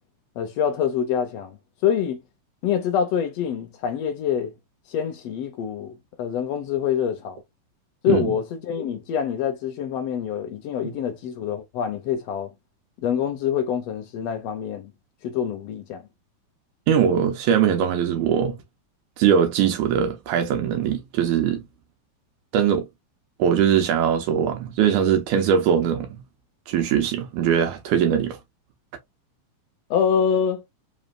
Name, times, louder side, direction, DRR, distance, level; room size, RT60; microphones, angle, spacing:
voice 1, 0.4-1.6 1.8-2.2 2.6-4.5 4.9-7.4 8.0-12.5 13.0-14.9 15.2-16.1 29.9-30.6, left 8 dB, 75° left, 1.5 m, -25 dB
voice 2, 16.9-18.6 19.2-21.6 22.5-22.9 23.4-26.2 26.7-28.4, right 8 dB, 80° right, 2.0 m, -21 dB
5.2 x 3.1 x 2.2 m
omnidirectional pair, 3.6 m